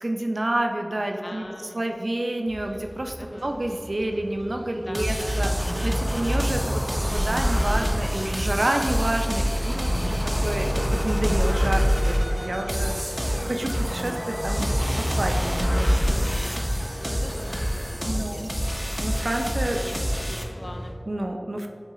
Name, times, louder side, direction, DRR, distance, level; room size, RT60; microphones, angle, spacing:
voice 1, 0.0-1.5 1.7-10.2 10.4-12.9 13.4-16.2 16.5-16.8 18.0-18.5 19.0-19.8 21.1-21.7, right 1 dB, 80° right, 3 dB, 0.3 m, -29 dB
voice 2, 1.2-1.9 3.2-3.5 4.7-5.8 10.0-10.5 12.6-13.2 16.1-16.6 17.0-18.4 19.7-21.0, left 1 dB, 65° left, 5 dB, 0.3 m, -42 dB
sound 1, 2.5-20.9, equal, 40° right, 0.8 m, -39 dB
sound 2, 4.9-20.4, equal, 10° right, 0.5 m, -27 dB
sound 3, 5.4-17.8, equal, 30° left, 1.1 m, -30 dB
7.0 x 2.8 x 2.3 m, 2.3 s
wide cardioid pair, 45°, 0 cm